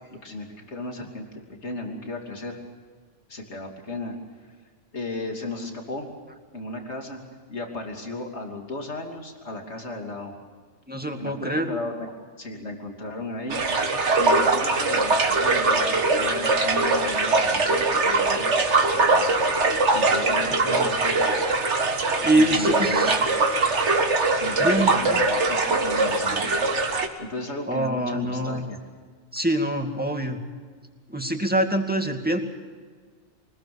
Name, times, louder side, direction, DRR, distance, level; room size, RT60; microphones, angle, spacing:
voice 1, 0.1-1.3 1.6-2.6 3.3-4.5 4.9-6.1 6.5-7.2 7.5-10.3 11.2-12.1 12.4-13.6 14.2-19.4 19.9-21.4 22.3-23.2 24.3-25.2 25.5-26.5 27.2-28.8, left 2 dB, 80° left, 2 dB, 3.2 m, -35 dB
voice 2, 10.9-11.7 20.6-20.9 22.2-23.2 24.6-25.2 27.7-28.6 29.3-30.4 31.1-32.4, right 1 dB, 10° right, 3 dB, 2.2 m, -24 dB
sound 1, 13.5-27.1, right 3 dB, 85° right, 2.0 m, -22 dB
25.0 x 20.5 x 7.1 m, 1.5 s
omnidirectional pair, 1.2 m